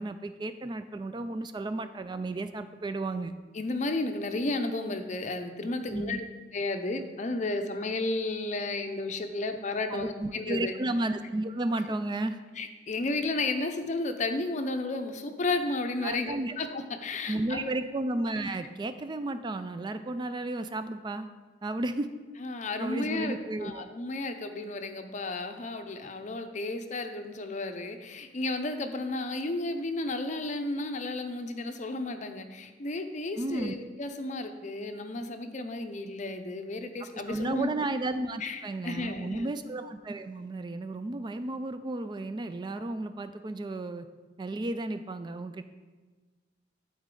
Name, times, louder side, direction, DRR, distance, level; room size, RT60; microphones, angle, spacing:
voice 1, 0.0-3.3 5.9-6.2 9.9-12.4 16.0-16.8 17.3-21.3 21.6-22.1 22.8-23.8 33.4-33.7 37.1-44.1 44.4-45.6, right 2 dB, 25° right, 10 dB, 0.3 m, -33 dB
voice 2, 3.5-6.2 6.5-10.7 12.6-17.7 22.4-37.7 38.4-39.5, left 2 dB, 40° left, 7 dB, 0.6 m, -33 dB
12.0 x 4.1 x 3.8 m, 1.3 s
head